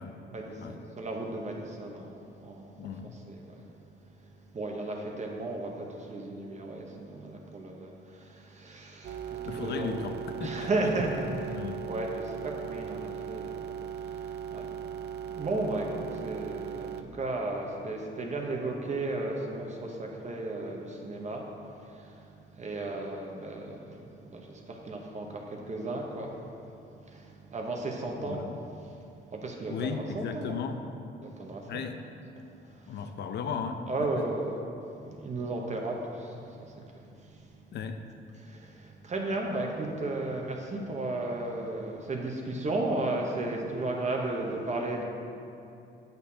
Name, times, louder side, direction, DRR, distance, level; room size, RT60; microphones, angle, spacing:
voice 1, 0.3-9.9 10.4-30.6 31.2-31.8 32.4-33.1 33.9-37.8 38.4-45.0, right 2 dB, 35° right, 1 dB, 0.9 m, -35 dB
voice 2, 2.8-3.1 9.4-10.7 11.5-11.8 28.3-28.6 29.7-30.8 31.7-32.0 32.9-33.8 34.2-34.3 37.7-38.0, left 6 dB, 60° left, 7 dB, 0.5 m, -35 dB
sound 1, 9.0-17.0, right 8 dB, 55° right, 0.4 m, -38 dB
8.0 x 6.5 x 2.8 m, 2.6 s
cardioid pair, 90°, 20 cm